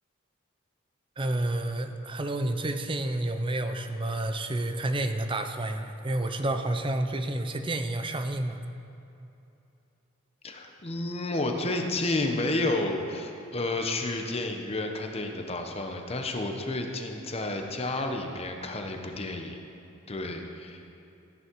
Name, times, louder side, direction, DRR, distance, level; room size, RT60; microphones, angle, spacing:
voice 1, 1.2-8.6, right 1 dB, 25° right, 8 dB, 0.6 m, -30 dB
voice 2, 10.4-19.6 20.1-20.8, left 2 dB, 30° left, 4 dB, 1.0 m, -31 dB
13.5 x 10.5 x 4.7 m, 2.8 s
head